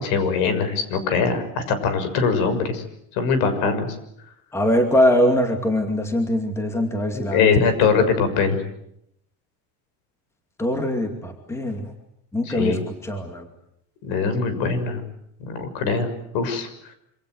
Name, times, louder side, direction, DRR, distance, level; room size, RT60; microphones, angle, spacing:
voice 1, 0.0-2.8 3.2-3.9 7.1-8.6 12.4-12.8 14.0-15.0 15.5-16.7, left 5 dB, 60° left, 10 dB, 6.6 m, -22 dB
voice 2, 4.5-7.5 10.6-11.9 12.3-13.5, left 1 dB, 5° left, 5 dB, 2.5 m, -22 dB
27.0 x 26.5 x 8.0 m, 0.76 s
cardioid pair, 175°, 40 cm